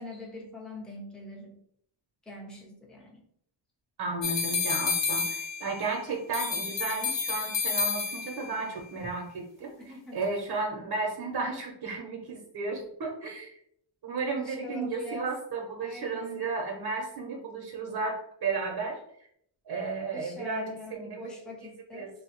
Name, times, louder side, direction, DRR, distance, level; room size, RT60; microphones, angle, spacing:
voice 1, 0.0-1.6 2.3-3.2 9.9-10.2 14.4-15.3 15.8-16.5 20.1-22.1, left 1 dB, ahead, -2 dB, 0.4 m, -43 dB
voice 2, 4.0-9.7 10.1-13.5 14.0-19.0 19.7-21.2 21.9-22.1, right 3 dB, 55° right, 0 dB, 0.6 m, -33 dB
That darn dinner bell, 4.2-5.9 6.3-8.5, left 5 dB, 65° left, 0.7 m, -30 dB
3.0 x 2.0 x 2.8 m, 0.69 s
wide cardioid pair, 145°, 48 cm